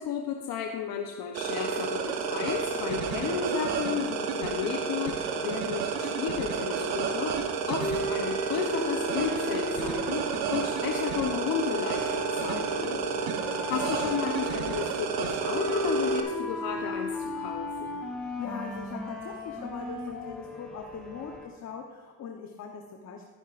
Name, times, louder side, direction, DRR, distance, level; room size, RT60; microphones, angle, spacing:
voice 1, 0.0-13.0 13.7-18.0, left 8 dB, 70° left, 2 dB, 0.9 m, -33 dB
sound 1, 1.3-16.2, right 5 dB, 85° right, 1.1 m, -31 dB
sound 2, 7.8-21.5, left 1 dB, 5° left, 2.4 m, -36 dB
voice 2, 12.5-13.2 18.2-23.3, left 6 dB, 50° left, 3 dB, 1.0 m, -41 dB
13.5 x 10.5 x 2.5 m, 1.3 s
supercardioid pair, 85°, 36 cm